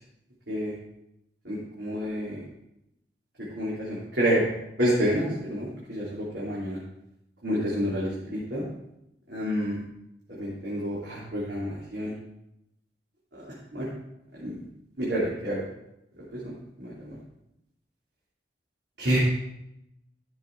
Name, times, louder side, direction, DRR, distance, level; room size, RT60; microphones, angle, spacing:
voice 1, 1.4-2.4 3.6-4.5 4.8-6.8 7.4-8.6 9.3-9.8 10.3-12.1 13.3-13.9 14.4-14.6 15.0-15.6 16.3-16.5 16.8-17.2 19.0-19.2, equal, 80° right, -7 dB, 3.1 m, -29 dB
14.5 x 6.5 x 4.6 m, 0.84 s
head